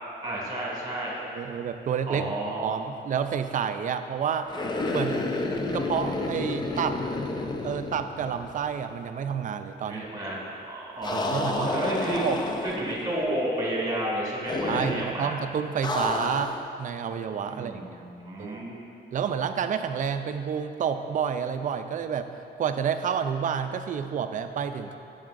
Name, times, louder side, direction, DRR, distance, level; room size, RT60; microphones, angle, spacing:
voice 1, 0.2-1.1 2.1-2.8 9.9-12.3 12.6-15.4 17.5-18.8, right 1 dB, 20° right, -4 dB, 1.9 m, -31 dB
voice 2, 1.3-2.3 2.6-4.5 4.9-5.2 5.7-7.0 7.6-10.1 11.1-11.8 12.2-12.4 14.7-16.5 16.8-17.8 18.4-18.6 19.1-22.3 22.6-24.9, right 7 dB, 45° right, 8 dB, 0.4 m, -29 dB
sound 1, 4.5-8.6 8.9-9.0 11.0-13.0 14.5-15.1 15.8-16.7, left 2 dB, 25° left, 0.4 m, -30 dB
10.5 x 7.1 x 2.5 m, 2.6 s
cardioid pair, 130°, 18 cm